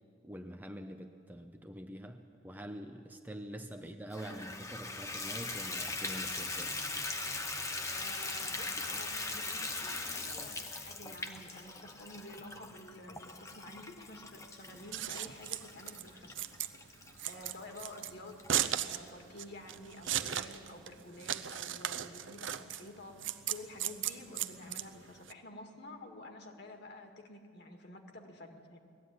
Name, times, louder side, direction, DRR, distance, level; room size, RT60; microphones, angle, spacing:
voice 1, 0.2-6.8, equal, 10° right, 5 dB, 0.6 m, -45 dB
Water tap faucet / Bathtub (filling or washing), 4.1-18.5 19.1-19.2 19.7-19.8 20.0-20.1, left 3 dB, 15° left, 0.9 m, -40 dB
voice 2, 8.0-16.4 16.9-28.8, left 1 dB, 55° left, 4 dB, 2.0 m, -50 dB
Scissors, 14.7-25.3, right 11 dB, 65° right, 0.7 m, -37 dB
19.0 x 14.0 x 9.6 m, 2.4 s
head